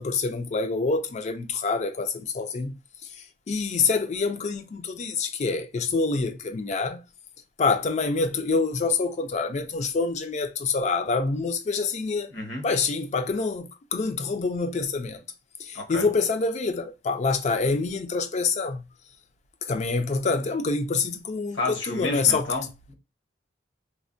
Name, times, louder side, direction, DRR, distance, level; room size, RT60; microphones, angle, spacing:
voice 1, 0.0-2.7 3.5-7.0 7.6-12.3 12.6-15.2 15.6-18.8 19.6-22.5, left 4 dB, 40° left, 0.4 m, -26 dB
voice 2, 12.3-12.7 15.7-16.1 21.5-22.9, left 3 dB, 70° left, 1.0 m, -31 dB
3.3 x 2.1 x 2.5 m
head